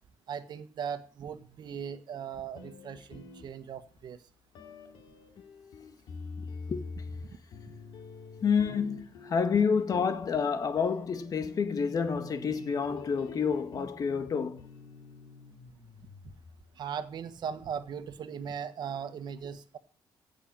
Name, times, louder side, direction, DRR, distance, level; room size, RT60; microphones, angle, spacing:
voice 1, 0.3-4.2 16.8-19.8, right 7 dB, 60° right, 1.6 m, -38 dB
sound 1, 2.5-4.0 4.5-16.8, left 4 dB, 75° left, 2.6 m, -47 dB
voice 2, 6.4-6.8 8.4-14.6, left 6 dB, 45° left, 1.7 m, -29 dB
16.0 x 6.9 x 7.5 m
cardioid pair, 85°, 8 cm